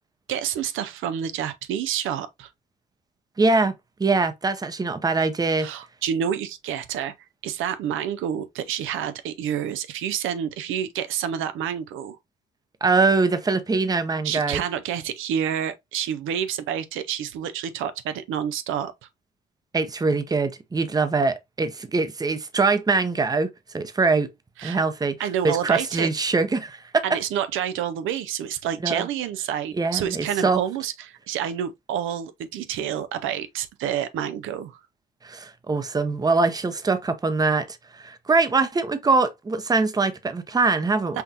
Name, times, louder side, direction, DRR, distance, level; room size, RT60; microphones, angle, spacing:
voice 1, 0.3-2.5 5.6-7.1 7.4-12.2 14.2-18.9 24.6-24.8 25.2-26.1 27.0-34.8 41.1-41.2, right 9 dB, 85° right, 0.5 m, -28 dB
voice 2, 3.4-3.7 4.0-5.7 12.8-14.6 19.7-24.3 24.6-25.2 25.4-27.0 28.8-29.1 29.7-30.6 35.2-41.2, right 3 dB, 20° right, 0.6 m, -23 dB
5.7 x 2.5 x 2.7 m
cardioid pair, 90°, 20 cm